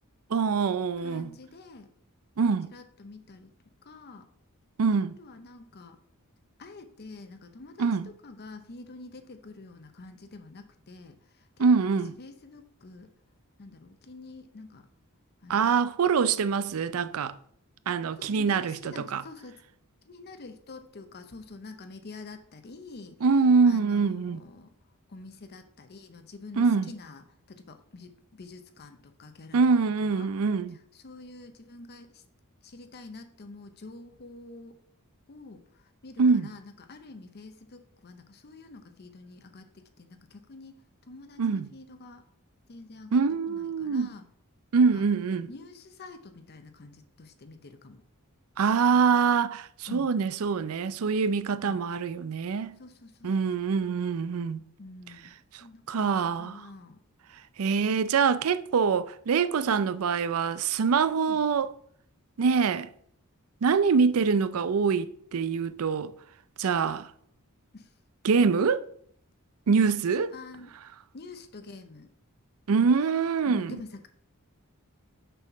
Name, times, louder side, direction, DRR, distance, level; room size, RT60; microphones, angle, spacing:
voice 1, 0.3-1.3 2.4-2.7 4.8-5.2 7.8-8.1 11.6-12.2 15.5-17.3 17.9-19.2 23.2-24.4 26.6-26.9 29.5-30.8 36.2-36.5 41.4-41.7 43.1-44.1 44.7-45.5 48.6-52.8 53.2-54.7 55.9-56.7 57.6-61.7 62.4-62.9 63.6-66.1 66.6-67.1 68.2-68.9 69.7-70.3 72.7-73.7, right 5 dB, 70° right, 0.5 m, -24 dB
voice 2, 1.0-1.9 2.4-3.5 3.8-4.3 5.2-6.0 6.6-11.9 12.2-13.1 13.6-14.9 15.4-15.7 18.2-19.6 20.1-23.2 23.6-24.7 25.1-29.7 30.0-30.3 30.9-32.2 32.6-34.8 35.3-40.8 41.1-42.3 42.7-44.2 44.7-45.0 45.5-48.0 49.9-50.1 51.5-51.8 52.8-53.3 53.8-53.9 54.8-55.3 55.6-57.0 61.1-61.4 67.7-67.9 70.3-70.7 71.1-72.1 73.4-74.1, left 3 dB, 50° left, 0.7 m, -47 dB
6.7 x 4.3 x 6.0 m
head